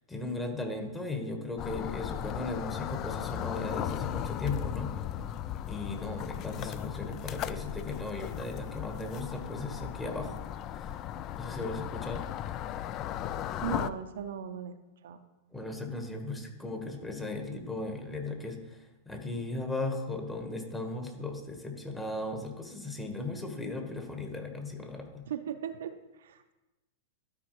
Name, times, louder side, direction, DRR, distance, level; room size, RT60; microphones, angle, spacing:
voice 1, 0.0-5.0 5.7-10.4 10.7-11.0 11.4-12.3 15.5-25.3, left 2 dB, 10° left, 3 dB, 1.4 m, -37 dB
sound 1, 1.6-13.9, left 11 dB, 35° left, 0.3 m, -36 dB
voice 2, 13.6-14.8 15.0-15.2 25.3-26.5, right 8 dB, 65° right, 8 dB, 0.5 m, -38 dB
12.5 x 4.8 x 3.2 m, 1.0 s
figure-of-eight pair, 100°, 0 cm